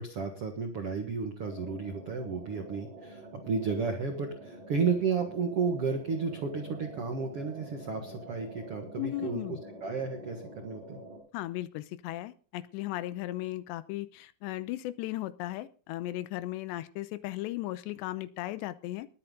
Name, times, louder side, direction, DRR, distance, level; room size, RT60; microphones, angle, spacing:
voice 1, 0.0-11.0, right 5 dB, 70° right, 5 dB, 1.3 m, -33 dB
sound 1, 1.4-11.2, right 1 dB, 50° right, 6.9 m, -47 dB
voice 2, 9.0-9.6 11.3-19.1, left 15 dB, 80° left, 15 dB, 2.7 m, -36 dB
20.5 x 8.8 x 3.8 m, 0.39 s
omnidirectional pair, 5.3 m